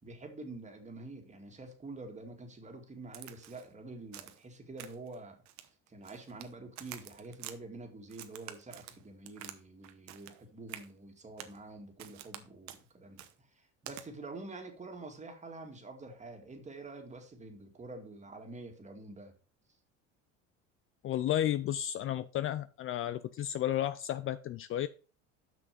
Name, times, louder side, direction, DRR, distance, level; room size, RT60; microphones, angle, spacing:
voice 1, 0.0-19.3, right 2 dB, 20° right, 4 dB, 2.1 m, -47 dB
Crack, 3.1-3.7 4.1-4.4 4.8-5.1 5.5-6.5 6.8-7.6 8.1-9.6 9.8-10.4 10.7-10.9 11.4-11.6 12.0-12.4 12.7-12.8 13.2-13.3 13.9-14.0, right 12 dB, 60° right, 1.0 m, -48 dB
voice 2, 21.0-24.9, left 12 dB, 40° left, 15 dB, 0.4 m, -32 dB
6.2 x 6.1 x 5.1 m, 0.38 s
supercardioid pair, 100°, 32 cm